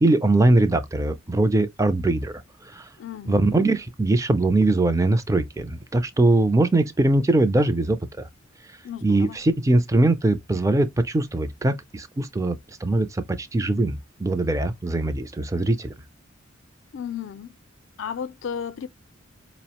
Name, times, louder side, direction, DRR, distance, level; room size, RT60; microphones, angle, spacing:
voice 1, 0.0-2.3 2.6-2.9 3.3-8.3 9.0-15.9, right 2 dB, 15° right, 0.4 m, -21 dB
voice 2, 3.0-3.7 8.8-9.4 16.9-17.6 18.0-18.9, left 7 dB, 65° left, 0.3 m, -34 dB
4.7 x 2.0 x 2.8 m
head